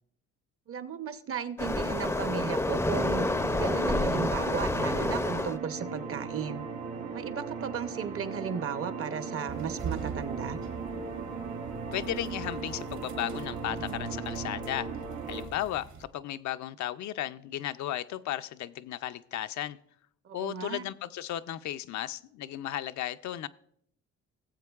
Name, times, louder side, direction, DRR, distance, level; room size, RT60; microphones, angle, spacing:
voice 1, 0.7-3.3 3.5-6.6 7.1-10.6 20.2-20.8, right 7 dB, 45° right, 0.8 m, -35 dB
Waves surf, 1.6-5.6, left 2 dB, 10° left, 0.5 m, -28 dB
sound 1, 2.9-15.5, right 4 dB, 90° right, 1.7 m, -38 dB
sound 2, 9.5-16.0, right 6 dB, 75° right, 2.0 m, -43 dB
voice 2, 11.9-14.9 15.3-19.8 20.3-23.5, left 12 dB, 70° left, 0.5 m, -35 dB
18.0 x 7.5 x 2.4 m
cardioid pair, 90°, 30 cm